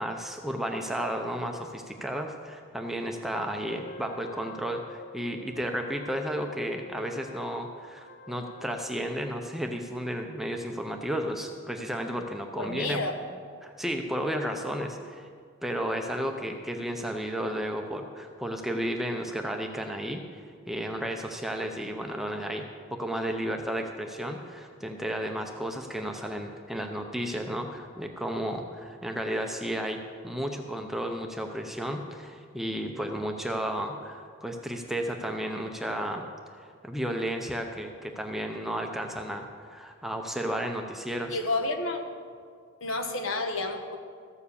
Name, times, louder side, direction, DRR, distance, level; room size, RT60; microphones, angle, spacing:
voice 1, 0.0-13.0 13.6-15.3 15.6-22.7 22.9-30.0 30.2-36.3 36.6-41.4, equal, ahead, 3 dB, 0.6 m, -33 dB
Wind instrument woodwind instrument, 3.6-9.2, left 3 dB, 45° left, 0.6 m, -47 dB
voice 2, 12.6-13.2 41.3-42.0 42.8-44.0, left 2 dB, 65° left, 5 dB, 1.2 m, -30 dB
14.0 x 7.1 x 6.9 m, 2.1 s
head